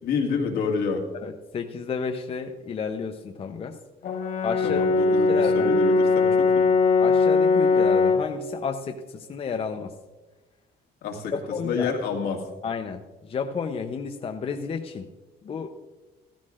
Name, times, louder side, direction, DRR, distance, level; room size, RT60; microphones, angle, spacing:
voice 1, 0.0-1.0 4.6-6.7 11.0-11.3 11.6-12.4, left 5 dB, 70° left, 1 dB, 2.0 m, -28 dB
voice 2, 1.1-3.8 4.4-4.8 5.3-5.8 7.0-9.9 11.3-11.9 12.6-15.1 15.4-15.7, left 6 dB, 35° left, 4 dB, 0.7 m, -31 dB
Brass instrument, 4.0-8.3, left 4 dB, 50° left, 1.2 m, -20 dB
14.5 x 14.0 x 2.5 m, 1.2 s
cardioid pair, 110°, 17 cm